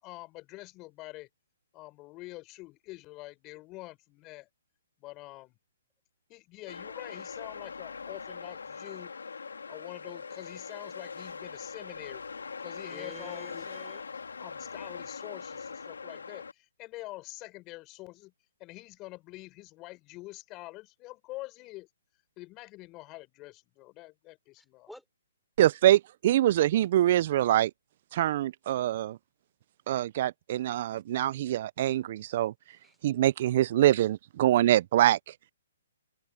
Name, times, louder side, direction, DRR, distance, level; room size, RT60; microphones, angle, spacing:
voice 1, 0.0-1.3 1.7-4.5 5.0-5.6 6.3-9.1 9.7-12.2 12.6-13.7 14.4-18.3 18.6-21.9 22.4-24.9, left 20 dB, 25° left, 5.1 m, -46 dB
sound 1, 6.7-16.5, left 5 dB, 90° left, 2.5 m, -42 dB
voice 2, 12.9-14.0 24.9-25.0 32.8-33.0, left 1 dB, ahead, 5.8 m, -48 dB
voice 3, 25.6-27.7 28.1-29.2 29.9-32.5 33.0-35.3, right 13 dB, 45° right, 0.3 m, -24 dB
hypercardioid pair, 150°, 0 cm